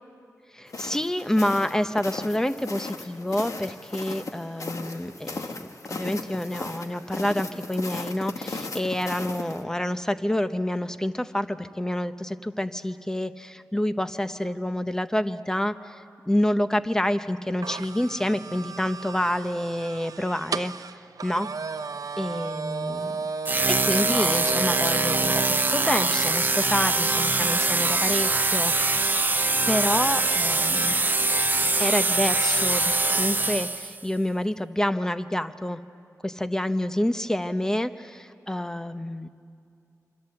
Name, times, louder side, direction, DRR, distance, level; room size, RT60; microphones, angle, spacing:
voice 1, 0.5-20.7 21.2-21.5 22.2-23.3 23.7-29.1 29.7-31.0 31.8-35.8 36.2-39.3, left 1 dB, 10° left, 10 dB, 0.9 m, -28 dB
sound 1, 0.7-9.6, left 3 dB, 60° left, 1.6 m, -37 dB
sound 2, 17.6-26.4, right 4 dB, 75° right, 0.6 m, -33 dB
sound 3, 23.4-34.0, right 3 dB, 30° right, 0.6 m, -23 dB
27.0 x 26.0 x 7.8 m, 2.4 s
wide cardioid pair, 100°, 6 cm